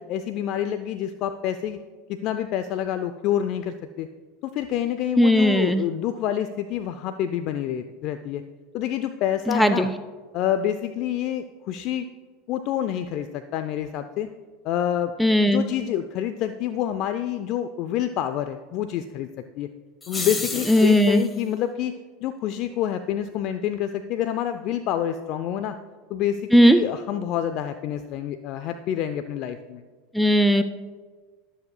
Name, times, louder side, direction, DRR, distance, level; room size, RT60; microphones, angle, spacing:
voice 1, 0.0-1.8 2.1-4.1 4.4-8.4 8.7-9.9 10.3-12.1 12.5-14.3 14.6-15.1 15.5-19.3 19.6-19.7 20.1-21.9 22.2-25.8 26.1-29.8, left 10 dB, 55° left, 9 dB, 0.4 m, -27 dB
voice 2, 5.2-5.8 9.5-9.9 15.2-15.6 20.7-21.2 26.5-26.8 30.1-30.6, equal, ahead, 9 dB, 0.5 m, -17 dB
sound 1, 20.0-21.3, left 3 dB, 20° left, 1.5 m, -32 dB
21.0 x 7.2 x 2.2 m, 1.4 s
hypercardioid pair, 90°, 0 cm